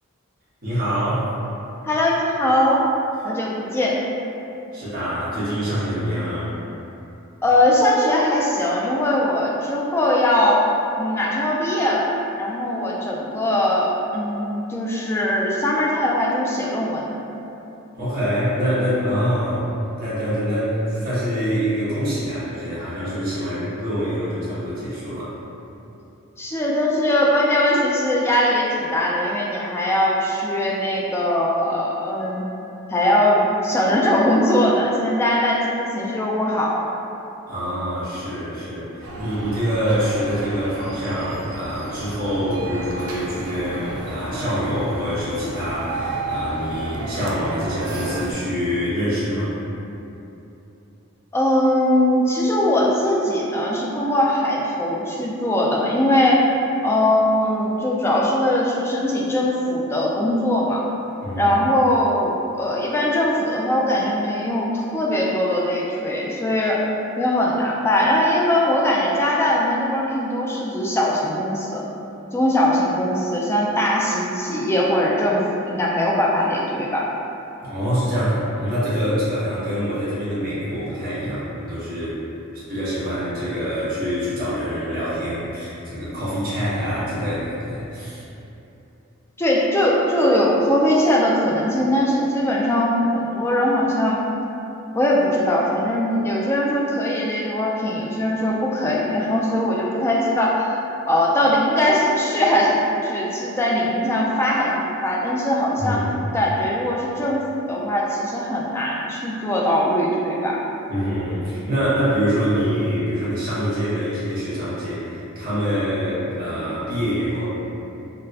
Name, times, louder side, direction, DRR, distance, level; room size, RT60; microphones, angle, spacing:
voice 1, 0.6-1.3 4.7-6.5 17.9-19.7 20.0-25.3 37.5-49.5 61.2-61.5 77.6-82.2 82.5-88.2 105.8-106.2 110.9-117.5, equal, 45° right, -12 dB, 1.2 m, -25 dB
voice 2, 1.8-2.8 3.2-4.0 7.4-10.6 11.0-17.1 26.4-32.4 32.9-36.9 51.3-56.5 56.8-60.8 61.4-66.8 67.2-71.8 72.3-77.1 89.4-94.2 94.9-100.8 101.1-106.0 106.3-110.6, left 1 dB, 10° left, -4 dB, 0.3 m, -20 dB
sound 1, 39.0-48.3, right 2 dB, 75° right, 0.5 m, -32 dB
4.0 x 2.1 x 2.7 m, 2.9 s
head